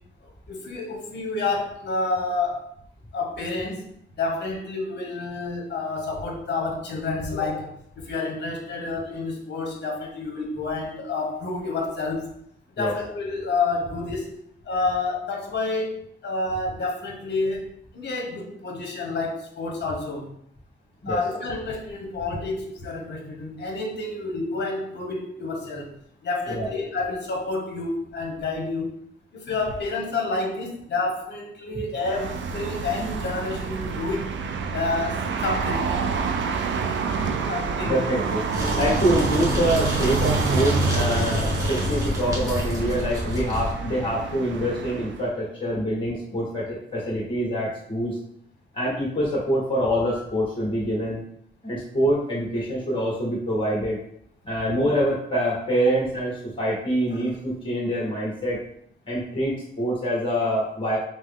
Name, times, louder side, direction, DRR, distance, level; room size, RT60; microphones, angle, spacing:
voice 1, 0.2-2.7 3.1-12.3 12.7-14.3 14.6-20.3 21.1-25.9 26.2-29.0 29.3-34.3 34.7-36.0 37.5-38.0 55.9-56.0, left 3 dB, 65° left, 1 dB, 1.0 m, -29 dB
sound 1, 32.0-45.3, right 5 dB, 80° right, 0.4 m, -28 dB
voice 2, 37.8-38.4 38.8-48.2 48.7-51.2 51.6-54.0 54.4-58.6 59.1-61.0, equal, 25° left, -5 dB, 1.6 m, -25 dB
sound 2, 38.5-43.7, left 1 dB, 15° right, 1.0 m, -27 dB
5.4 x 2.0 x 3.5 m, 0.70 s
wide cardioid pair, 150°, 19 cm